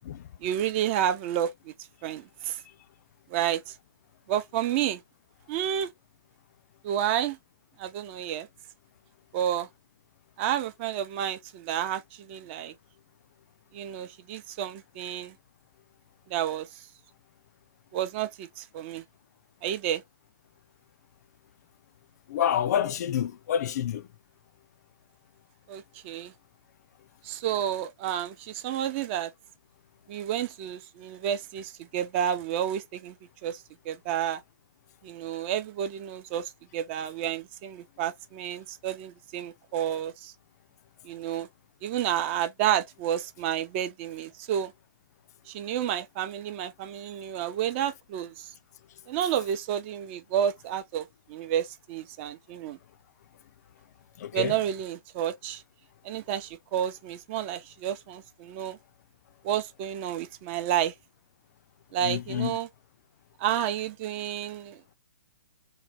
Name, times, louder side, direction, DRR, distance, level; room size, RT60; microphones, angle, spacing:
voice 1, 0.4-1.7 2.0-2.6 3.3-3.7 4.3-5.0 5.5-5.9 6.8-7.4 7.8-8.5 9.3-9.7 10.4-12.7 13.7-15.3 16.3-16.8 17.9-19.0 19.6-20.0 25.7-26.3 27.2-29.3 30.1-33.2 33.4-34.4 35.0-40.3 41.0-41.5 41.8-44.7 45.5-48.5 49.1-52.8 54.3-55.6 56.0-58.8 59.4-60.9 61.9-62.7 63.4-64.9, right 10 dB, 35° right, 0.5 m, -30 dB
voice 2, 22.3-24.1 54.2-54.6 62.0-62.6, left 9 dB, 50° left, 0.4 m, -28 dB
3.2 x 2.2 x 3.6 m
hypercardioid pair, 140°, 11 cm